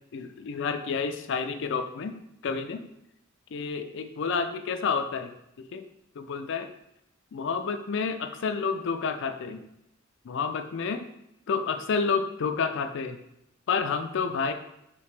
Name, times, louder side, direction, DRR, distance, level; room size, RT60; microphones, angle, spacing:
voice 1, 0.1-2.2 2.4-2.8 3.5-5.3 5.6-5.8 6.2-6.7 7.3-9.6 10.2-11.0 11.5-13.2 13.7-14.5, left 5 dB, 60° left, 7 dB, 0.4 m, -29 dB
5.0 x 2.8 x 3.2 m, 0.81 s
head